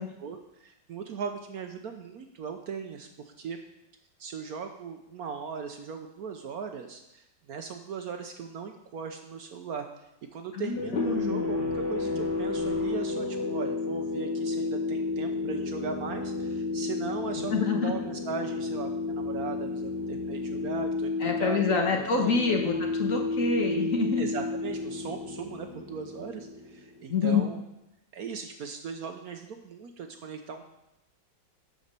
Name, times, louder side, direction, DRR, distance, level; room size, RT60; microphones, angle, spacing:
voice 1, 0.0-3.6 4.2-9.9 10.3-22.4 22.6-22.8 24.2-27.6 28.1-30.6, right 6 dB, 65° right, 5 dB, 1.1 m, -38 dB
voice 2, 10.5-11.6 17.4-17.9 21.2-24.2 27.1-27.5, left 4 dB, 50° left, 2 dB, 1.5 m, -27 dB
sound 1, 10.8-27.1, left 3 dB, 75° left, 2.1 m, -32 dB
11.5 x 5.2 x 6.7 m, 0.88 s
omnidirectional pair, 2.0 m